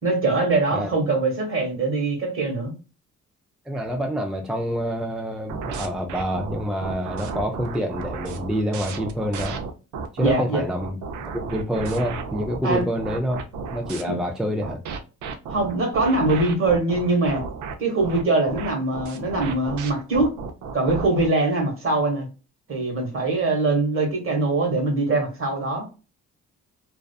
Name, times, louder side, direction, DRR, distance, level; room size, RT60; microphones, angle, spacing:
voice 1, 0.0-2.7 10.2-10.7 12.6-12.8 14.1-14.2 15.5-17.4 17.8-20.4 20.7-22.3 22.7-25.9, right 2 dB, 45° right, 1.2 m, -22 dB
voice 2, 3.7-9.6 10.1-11.0 11.3-13.4 13.7-14.8, equal, ahead, 0.3 m, -27 dB
sound 1, 5.5-10.3 10.8-14.0 14.6-21.3, right 5 dB, 75° right, 0.6 m, -33 dB
2.4 x 2.3 x 2.2 m
cardioid pair, 90°, 30 cm